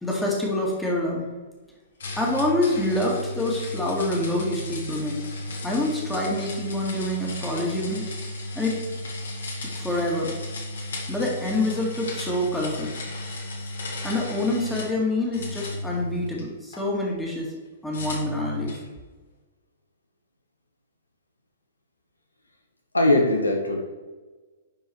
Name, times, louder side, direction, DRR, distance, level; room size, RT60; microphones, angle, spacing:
voice 1, 0.0-1.2 2.2-5.2 5.6-8.1 8.6-8.8 9.8-10.3 11.1-12.9 14.0-17.5 17.8-18.8, left 1 dB, 5° left, -3 dB, 2.4 m, -26 dB
sound 1, 2.0-15.0 15.3-16.8 17.9-18.9, left 1 dB, 60° left, 1.7 m, -34 dB
voice 2, 22.9-23.8, left 1 dB, 85° left, 3 dB, 1.3 m, -20 dB
10.5 x 4.7 x 4.7 m, 1.3 s
figure-of-eight pair, 110°, 0 cm